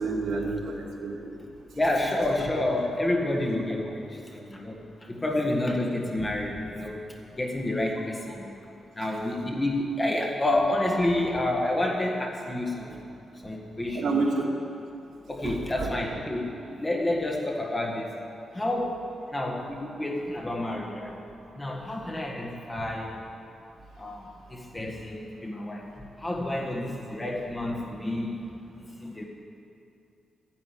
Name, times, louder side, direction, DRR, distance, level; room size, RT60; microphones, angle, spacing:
voice 1, 0.0-1.3 13.9-14.5 15.4-15.9, right 3 dB, 75° right, -1 dB, 2.4 m, -29 dB
voice 2, 1.7-8.5 9.0-13.1 13.4-14.2 15.3-18.2 18.5-21.2 21.6-23.2 24.0-28.4 28.7-29.2, left 1 dB, 15° left, 0 dB, 1.6 m, -29 dB
12.5 x 10.0 x 9.6 m, 2.6 s
wide cardioid pair, 180°, 0 cm